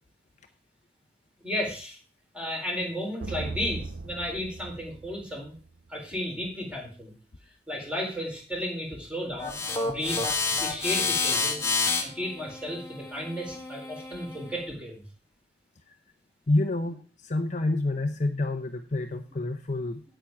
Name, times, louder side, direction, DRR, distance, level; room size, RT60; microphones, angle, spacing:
voice 1, 1.4-2.0 2.3-5.5 5.9-7.1 7.7-11.7 12.0-15.0, left 1 dB, 5° right, -1 dB, 4.0 m, -34 dB
sound 1, 3.2-5.9, right 3 dB, 80° right, 0.7 m, -38 dB
sound 2, 9.4-14.6, left 4 dB, 15° left, 1.7 m, -29 dB
voice 2, 16.5-20.0, left 2 dB, 45° left, 6 dB, 0.8 m, -28 dB
9.0 x 9.0 x 4.7 m, 0.37 s
head